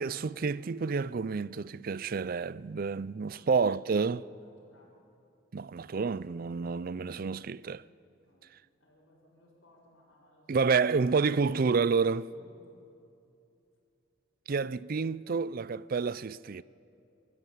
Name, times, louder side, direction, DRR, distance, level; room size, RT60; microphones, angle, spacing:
voice 1, 0.0-4.2 5.5-7.8 10.5-12.3 14.5-16.6, right 5 dB, 45° right, 0.4 m, -29 dB
voice 2, 3.3-4.1 4.4-4.9 8.2-8.5 8.8-10.8 12.3-12.5, left 1 dB, 85° left, 4.9 m, -62 dB
28.0 x 13.5 x 9.1 m
head